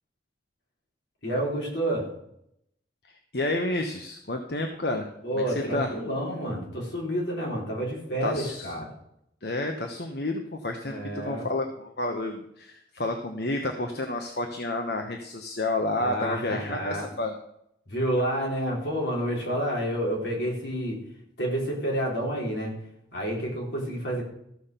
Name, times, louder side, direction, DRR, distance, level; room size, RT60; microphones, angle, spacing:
voice 1, 1.2-2.1 5.2-8.9 10.8-11.5 16.0-17.1 17.9-21.0 21.4-22.7 23.1-24.2, equal, 85° left, -2 dB, 4.0 m, -29 dB
voice 2, 3.3-5.1 5.5-5.9 8.2-8.7 9.4-17.3, left 2 dB, 70° left, 4 dB, 1.1 m, -30 dB
14.5 x 5.8 x 6.8 m, 0.75 s
head